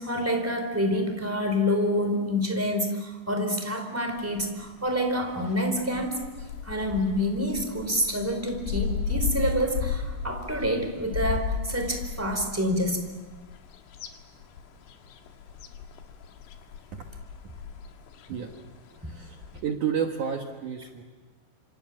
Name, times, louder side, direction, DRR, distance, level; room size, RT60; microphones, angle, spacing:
voice 1, 0.0-6.2 6.6-13.0, equal, 5° right, 5 dB, 3.6 m, -27 dB
sound 1, 4.1-19.6, left 6 dB, 75° left, 4.3 m, -35 dB
voice 2, 19.0-21.0, right 7 dB, 65° right, 3 dB, 2.0 m, -31 dB
28.0 x 27.0 x 7.6 m, 1.3 s
omnidirectional pair, 5.6 m